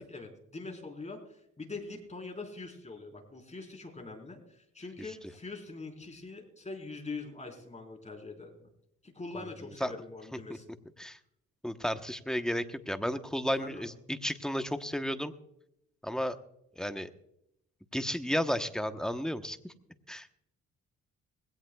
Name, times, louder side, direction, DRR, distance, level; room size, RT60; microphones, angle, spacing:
voice 1, 0.0-8.7 9.0-10.6 13.6-13.9, left 3 dB, 25° left, 2 dB, 4.3 m, -43 dB
voice 2, 11.6-15.3 16.0-16.4 16.8-17.1 17.9-19.7 20.1-20.3, equal, ahead, 8 dB, 1.1 m, -33 dB
21.0 x 16.5 x 2.4 m, 0.78 s
cardioid pair, 90°, 30 cm